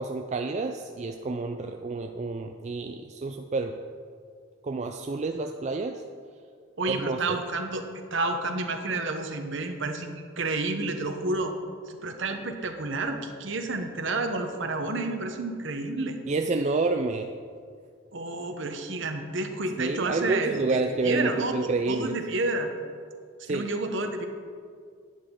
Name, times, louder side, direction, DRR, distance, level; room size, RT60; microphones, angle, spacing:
voice 1, 0.0-3.8 4.6-6.0 6.9-7.4 16.3-17.3 19.8-22.2 23.4-23.7, right 3 dB, 35° right, 5 dB, 0.4 m, -29 dB
voice 2, 6.8-7.8 8.1-11.5 11.9-16.2 18.1-21.5 21.9-22.7 23.4-24.3, right 2 dB, 60° right, 6 dB, 1.0 m, -30 dB
11.0 x 10.0 x 3.8 m, 2.1 s
head